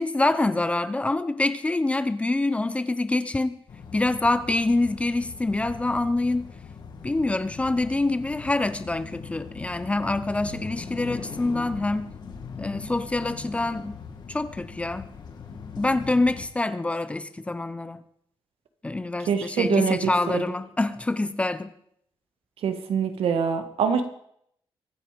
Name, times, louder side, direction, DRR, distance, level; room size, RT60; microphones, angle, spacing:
voice 1, 0.0-3.6 3.9-6.5 7.0-12.1 12.6-14.0 14.3-15.1 15.8-18.0 18.8-21.7, left 2 dB, 15° left, 0.7 m, -26 dB
sound 1, 3.7-16.5, left 5 dB, 50° left, 2.2 m, -40 dB
voice 2, 19.3-20.0 20.3-20.4 22.6-24.0, right 7 dB, 85° right, 2.0 m, -24 dB
23.5 x 9.2 x 5.3 m
wide cardioid pair, 170°, 10 cm